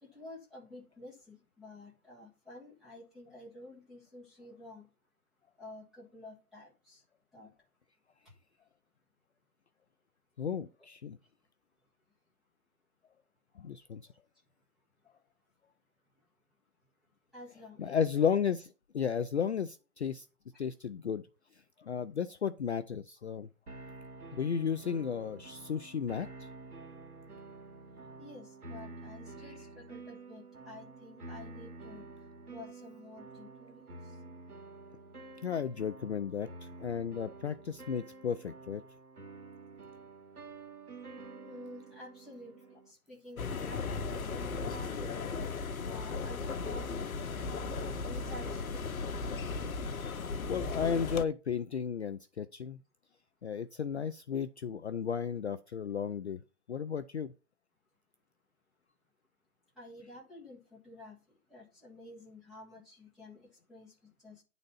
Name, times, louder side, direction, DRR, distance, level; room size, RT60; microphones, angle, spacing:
voice 1, 0.0-4.9 5.6-7.0 7.3-7.5 17.3-18.0 20.5-20.6 28.2-32.0 32.5-34.2 41.4-45.3 45.9-47.1 48.1-49.0 59.8-61.2 61.5-64.4, left 1 dB, ahead, 1.6 m, -51 dB
voice 2, 10.4-11.2 13.6-14.0 17.8-20.3 20.6-21.2 21.8-23.5 24.3-26.5 29.5-29.6 35.4-38.8 50.5-52.8 53.4-56.4 56.7-57.3, left 7 dB, 50° left, 0.4 m, -34 dB
sound 1, 23.7-42.9, right 3 dB, 80° right, 2.0 m, -49 dB
sound 2, 43.4-51.2, left 4 dB, 65° left, 1.0 m, -36 dB
9.9 x 4.0 x 5.6 m
hypercardioid pair, 160°, 44 cm